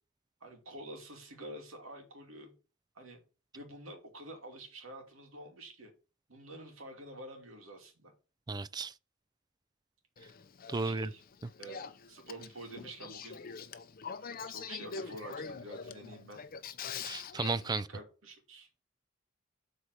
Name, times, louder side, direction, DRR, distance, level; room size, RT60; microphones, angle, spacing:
voice 1, 0.4-2.5 3.0-3.2 3.5-5.9 6.3-8.1 10.7-11.2 11.6-13.4 14.5-16.4 17.9-18.7, right 1 dB, 80° right, 2.5 m, -48 dB
voice 2, 8.5-8.9 10.7-11.1 17.0-17.9, right 3 dB, 20° right, 0.3 m, -34 dB
Male speech man speaking / Female speech woman speaking / Conversation, 10.2-17.8, left 6 dB, 45° left, 0.6 m, -44 dB
7.9 x 4.3 x 6.5 m
head